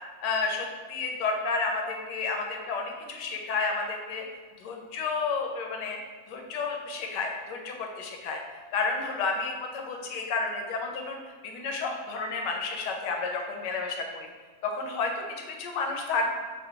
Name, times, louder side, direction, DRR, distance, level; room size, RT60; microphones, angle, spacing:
voice 1, 0.2-4.2 4.6-6.0 6.3-8.4 8.7-11.2 11.4-14.3 14.6-16.3, left 4 dB, 80° left, 2 dB, 1.2 m, -31 dB
3.8 x 2.2 x 4.4 m, 1.5 s
omnidirectional pair, 1.9 m